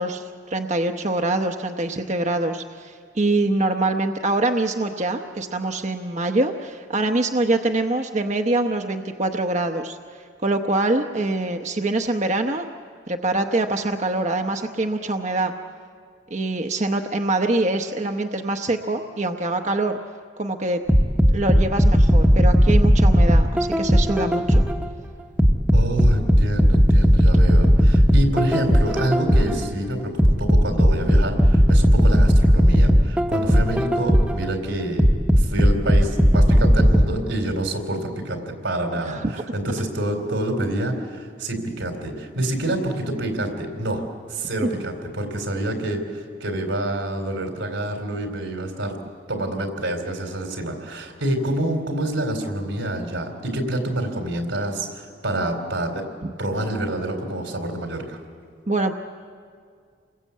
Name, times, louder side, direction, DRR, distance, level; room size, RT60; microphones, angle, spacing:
voice 1, 0.0-10.0 10.4-12.6 13.1-15.5 16.3-20.0 20.4-20.8 21.3-24.6 39.1-39.4 56.2-56.3 58.7-58.9, right 2 dB, 40° right, 4 dB, 0.9 m, -24 dB
sound 1, 20.9-24.9 25.4-29.7 30.2-34.5 35.0-37.0, equal, 5° right, 1.0 m, -16 dB
voice 2, 25.7-35.1 35.4-49.0 49.3-56.0 56.4-58.2, right 1 dB, 90° right, 4 dB, 3.9 m, -27 dB
29.0 x 21.5 x 8.5 m, 2.1 s
head